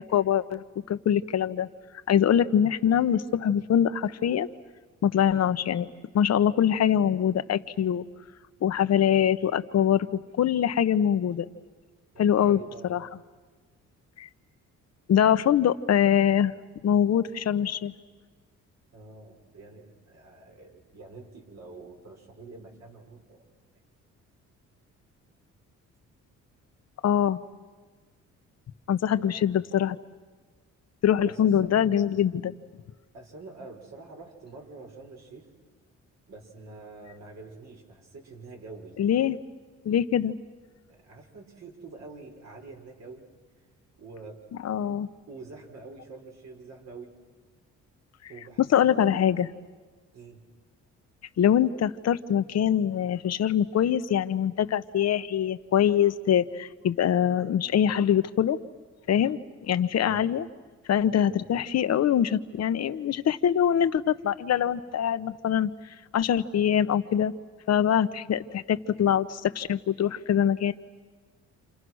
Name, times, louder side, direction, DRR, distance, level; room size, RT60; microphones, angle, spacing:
voice 1, 0.0-1.7 2.1-4.5 5.0-5.9 6.1-8.0 8.6-10.1 10.4-11.4 12.2-12.6 12.9-13.1 14.2-14.3 15.1-16.5 16.8-17.9 27.0-27.4 28.9-30.0 31.0-32.5 39.0-39.4 39.8-40.3 44.6-45.1 48.7-49.5 51.4-58.6 59.1-60.5 60.9-65.7 66.1-67.3 67.7-70.7, left 9 dB, 55° left, 11 dB, 1.1 m, -23 dB
voice 2, 12.1-12.9 18.9-23.4 29.2-29.5 31.2-31.7 33.1-35.5 36.3-39.0 40.9-43.2 44.0-44.4 45.3-47.1 48.3-49.3 50.1-50.4 60.0-60.2 61.3-61.4, right 3 dB, 60° right, 1 dB, 5.9 m, -46 dB
28.5 x 28.5 x 6.4 m, 1.4 s
cardioid pair, 90°, 30 cm